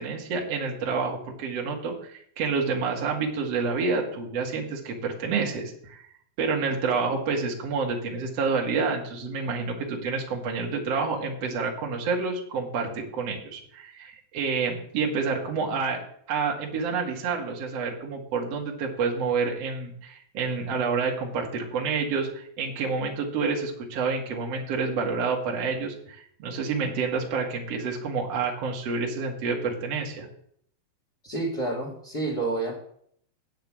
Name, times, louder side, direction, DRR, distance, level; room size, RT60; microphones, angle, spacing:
voice 1, 0.0-6.0 6.4-16.0 16.3-30.3, right 4 dB, 50° right, 0 dB, 2.2 m, -28 dB
voice 2, 31.2-32.7, right 2 dB, 30° left, -3 dB, 2.4 m, -29 dB
9.1 x 6.7 x 7.4 m, 0.64 s
omnidirectional pair, 4.4 m